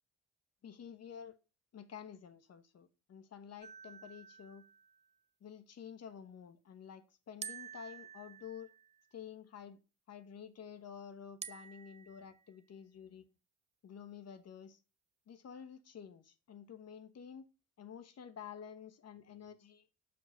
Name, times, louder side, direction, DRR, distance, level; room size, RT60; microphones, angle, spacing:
voice 1, 0.6-1.4 1.7-4.6 5.4-8.7 9.1-9.8 10.1-13.2 13.8-14.8 15.3-17.5 17.8-19.9, left 8 dB, 55° left, 1.1 m, -50 dB
sound 1, 3.6-5.1 7.4-9.1 11.4-12.5, right 6 dB, 25° right, 0.4 m, -50 dB
6.5 x 5.2 x 5.4 m
cardioid pair, 90°, 30 cm